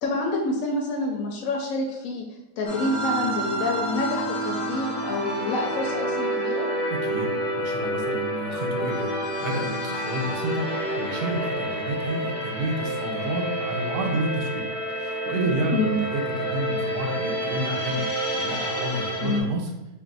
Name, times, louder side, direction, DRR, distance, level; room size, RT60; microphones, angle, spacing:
voice 1, 0.0-2.2 2.6-6.7 15.7-16.0 19.2-19.4, left 2 dB, 80° left, 0 dB, 1.0 m, -27 dB
sound 1, 2.7-19.4, right 1 dB, 45° left, 0.7 m, -29 dB
voice 2, 6.9-9.1 9.4-14.6 14.9-18.0 18.3-19.7, right 1 dB, 50° right, 2 dB, 0.8 m, -30 dB
3.6 x 2.6 x 3.9 m, 0.96 s
omnidirectional pair, 1.4 m